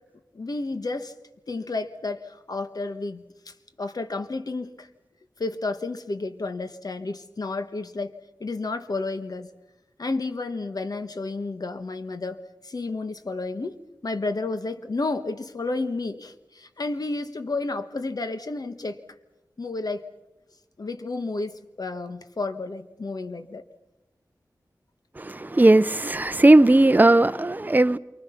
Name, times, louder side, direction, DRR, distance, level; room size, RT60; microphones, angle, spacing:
voice 1, 0.3-1.1 1.5-3.2 3.8-4.9 5.4-8.1 8.4-9.5 10.0-12.4 12.6-19.0 19.6-20.1 20.8-23.6, left 3 dB, 60° left, 1.5 m, -31 dB
voice 2, 25.4-28.0, right 2 dB, 25° right, 0.7 m, -17 dB
28.0 x 24.0 x 5.9 m
wide cardioid pair, 55°, 7 cm